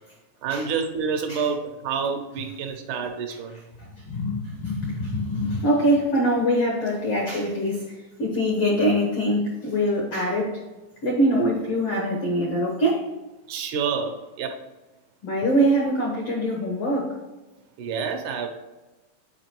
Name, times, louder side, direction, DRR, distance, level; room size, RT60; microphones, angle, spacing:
voice 1, 0.4-3.6 13.5-14.6 15.8-15.9 17.8-18.5, right 6 dB, 80° right, 1.8 m, -28 dB
voice 2, 3.9-10.6 11.0-13.1 15.2-17.2, equal, 75° left, 1.3 m, -23 dB
8.9 x 4.7 x 3.0 m
omnidirectional pair, 4.4 m